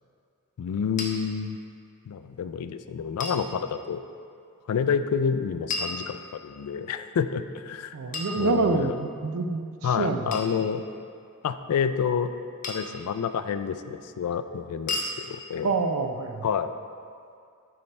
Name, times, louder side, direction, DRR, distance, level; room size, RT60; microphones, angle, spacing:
voice 1, 0.6-1.6 2.1-4.0 4.7-8.0 8.4-9.0 9.8-10.8 11.4-12.3 12.7-15.7 16.4-16.7, left 7 dB, 75° left, 11 dB, 0.3 m, -28 dB
sound 1, 1.0-1.1 3.2-3.5 5.7-6.6 8.1-9.0 10.3-10.6 12.6-13.0 14.9-15.2, left 3 dB, 35° left, 0.7 m, -33 dB
voice 2, 7.9-10.3 15.6-16.4, right 3 dB, 65° right, 7 dB, 0.4 m, -27 dB
9.5 x 3.3 x 4.2 m, 2.3 s
head